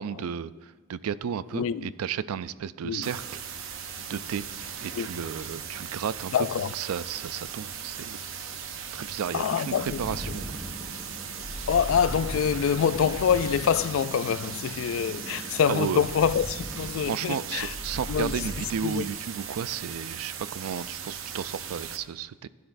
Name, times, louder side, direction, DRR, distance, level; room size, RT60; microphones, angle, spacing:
voice 1, 0.0-3.2 3.5-3.8 4.1-4.5 4.8-6.3 6.7-8.2 8.9-10.5 15.7-16.0 17.1-22.5, right 7 dB, 90° right, 0.4 m, -33 dB
voice 2, 1.5-1.9 2.8-3.1 4.9-5.1 6.3-6.7 9.3-10.0 11.7-17.7 18.1-18.3 18.8-19.0, left 7 dB, 65° left, 0.3 m, -25 dB
sound 1, 3.0-22.0, right 7 dB, 65° right, 0.7 m, -38 dB
sound 2, 9.8-18.7, equal, 10° right, 2.4 m, -39 dB
16.0 x 10.0 x 2.6 m
head